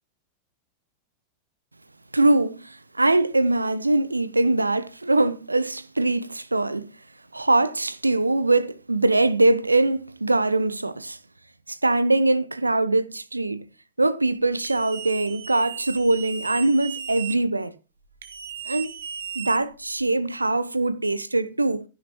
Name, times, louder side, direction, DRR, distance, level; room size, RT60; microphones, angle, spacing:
voice 1, 2.1-6.9 7.3-11.2 11.7-13.6 14.0-17.7 18.7-18.9 19.3-21.8, right 2 dB, 80° right, 0.7 m, -22 dB
sound 1, 14.6-17.4 18.2-20.0, right 8 dB, 65° right, 1.7 m, -36 dB
16.0 x 10.0 x 3.0 m
figure-of-eight pair, 90°, 0 cm